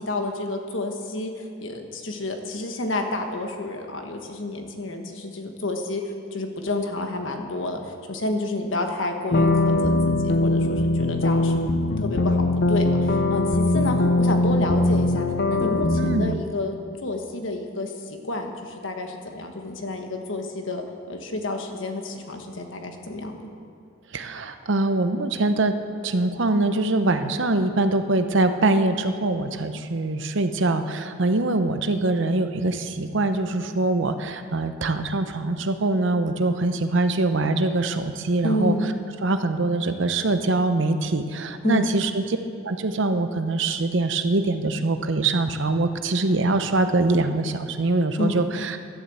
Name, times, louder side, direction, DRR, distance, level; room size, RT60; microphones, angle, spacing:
voice 1, 0.0-6.0 6.3-11.6 12.0-15.2 15.5-23.5 38.4-39.0 41.6-41.9 48.2-48.4, left 2 dB, 75° left, 4 dB, 1.4 m, -30 dB
sound 1, 9.3-16.3, left 2 dB, 55° left, 0.6 m, -21 dB
voice 2, 16.0-16.5 24.1-25.7 26.0-38.7 39.2-42.4 42.6-48.8, right 2 dB, 65° right, 8 dB, 0.8 m, -23 dB
11.5 x 10.0 x 7.8 m, 2.4 s
head